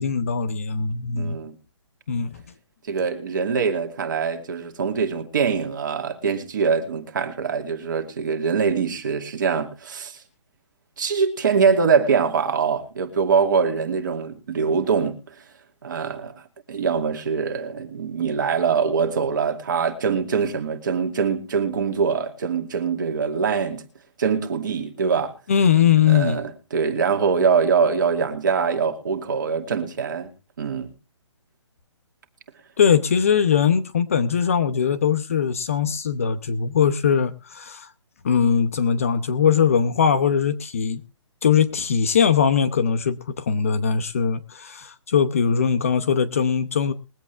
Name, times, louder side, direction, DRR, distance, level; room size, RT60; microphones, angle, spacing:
voice 1, 0.0-1.4 2.1-2.3 25.5-26.4 32.8-37.9 38.2-41.0 41.4-46.9, left 7 dB, 30° left, 0.7 m, -21 dB
voice 2, 1.2-1.5 2.9-10.2 11.0-15.3 15.8-16.3 16.7-23.8 24.2-25.4 26.1-30.3 30.6-30.9, right 6 dB, 40° right, 2.5 m, -23 dB
22.5 x 8.3 x 3.4 m
hypercardioid pair, 175°, 16 cm